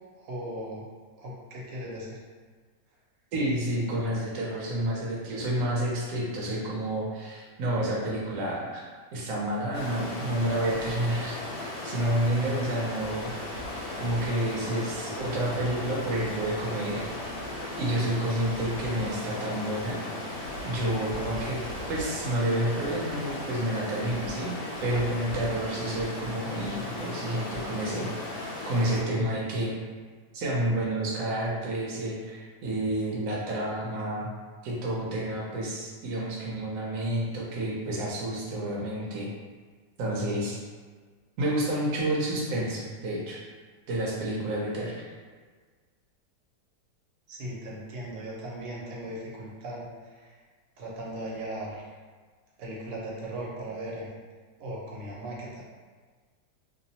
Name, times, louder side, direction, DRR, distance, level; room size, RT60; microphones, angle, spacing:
voice 1, 0.2-0.9 1.2-2.2 47.3-50.4 50.8-51.9 52.6-54.1 54.6-55.6, right 1 dB, 85° right, -4 dB, 1.2 m, -38 dB
voice 2, 3.3-8.8 9.1-13.3 14.0-17.1 17.8-20.0 20.6-21.6 21.9-24.6 24.8-28.1 28.6-29.7 30.3-34.3 34.6-39.3 40.0-40.6 41.4-43.4 43.9-45.0, right 1 dB, 65° right, -4 dB, 1.0 m, -29 dB
Stream, 9.7-29.0, left 1 dB, 80° left, 1.2 m, -36 dB
2.8 x 2.0 x 2.7 m, 1.5 s
omnidirectional pair, 1.8 m